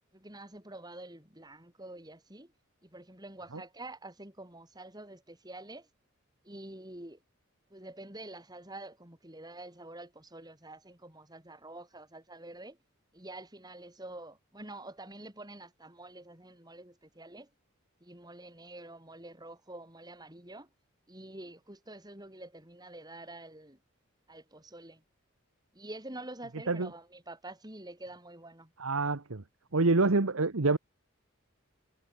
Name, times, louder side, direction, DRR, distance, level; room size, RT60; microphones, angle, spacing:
voice 1, 0.1-2.5 2.8-5.9 6.4-7.2 7.7-12.8 13.1-17.5 18.0-20.7 21.1-23.8 24.3-25.0 25.7-28.7, right 2 dB, 20° right, 5.4 m, -47 dB
voice 2, 28.8-29.4 29.7-30.8, right 3 dB, 85° right, 1.3 m, -26 dB
head